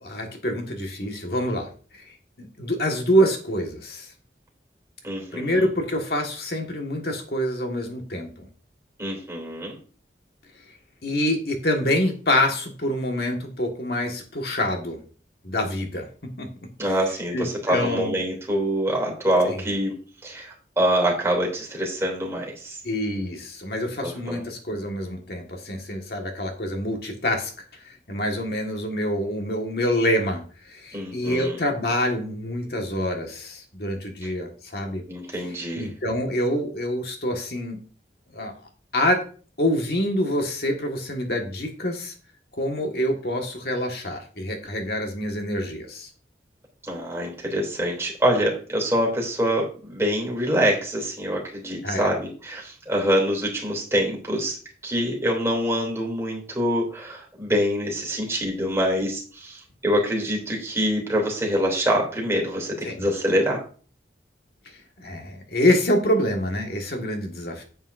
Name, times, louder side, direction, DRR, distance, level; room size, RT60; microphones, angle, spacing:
voice 1, 0.0-4.1 5.3-8.5 11.0-15.0 15.4-16.1 16.4-16.5 16.9-17.0 17.3-18.2 19.5-19.6 22.8-27.5 27.8-35.0 35.8-37.8 38.3-38.5 38.9-39.2 39.6-42.1 42.6-46.1 51.8-52.1 62.8-63.1 64.7-67.6, left 1 dB, 60° left, 2 dB, 1.7 m, -26 dB
voice 2, 5.0-5.7 9.0-9.8 16.8-20.0 20.2-22.8 24.0-24.4 30.9-31.6 35.1-35.9 46.8-54.6 54.8-63.6, equal, 15° right, -1 dB, 3.0 m, -25 dB
9.6 x 8.9 x 2.6 m, 0.39 s
head